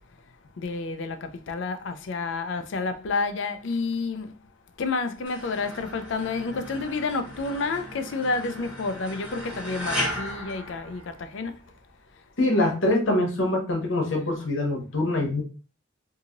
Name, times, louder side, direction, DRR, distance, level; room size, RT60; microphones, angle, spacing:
voice 1, 0.6-4.3 4.8-11.6 12.1-12.2, left 3 dB, 70° left, 0.4 m, -30 dB
sound 1, 5.3-11.5, equal, 5° right, 1.2 m, -36 dB
voice 2, 12.4-15.4, left 1 dB, 90° left, 1.0 m, -24 dB
2.8 x 2.7 x 2.5 m
head